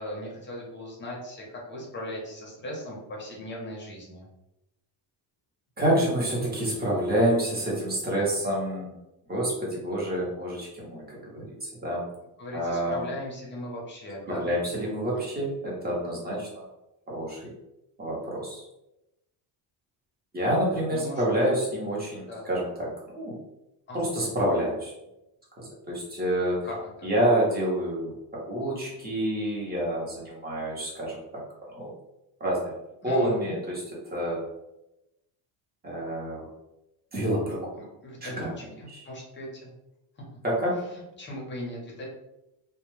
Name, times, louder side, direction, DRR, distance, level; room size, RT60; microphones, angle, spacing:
voice 1, 0.0-4.3 12.4-14.5 20.9-21.6 22.2-22.5 23.9-24.0 26.6-27.1 33.0-33.6 37.8-39.7 40.8-42.0, left 1 dB, 25° left, -3 dB, 0.6 m, -38 dB
voice 2, 5.8-8.9 9.3-12.1 12.5-13.0 14.3-16.6 17.1-17.5 18.0-18.6 20.3-23.4 23.9-24.9 25.6-26.7 27.0-31.2 31.7-31.9 32.4-32.7 33.0-33.8 34.1-34.4 35.8-36.5 37.1-37.7 38.2-38.5 38.9-39.0 40.4-40.8, right 1 dB, 20° right, -4 dB, 0.7 m, -28 dB
2.1 x 2.1 x 3.0 m, 0.91 s
cardioid pair, 150°, 48 cm